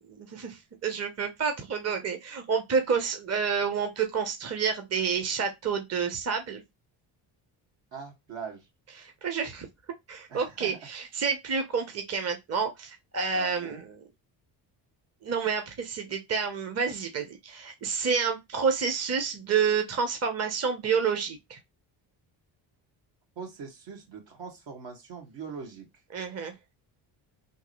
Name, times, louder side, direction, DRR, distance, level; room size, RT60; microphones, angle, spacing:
voice 1, 0.0-6.6 9.0-9.7 10.1-13.8 15.2-21.6 26.1-26.5, right 6 dB, 30° right, 0.9 m, -29 dB
voice 2, 7.9-8.7 10.3-10.8 13.3-13.8 23.4-25.9, right 6 dB, 70° right, 1.9 m, -41 dB
3.6 x 2.8 x 3.1 m
supercardioid pair, 75°, 47 cm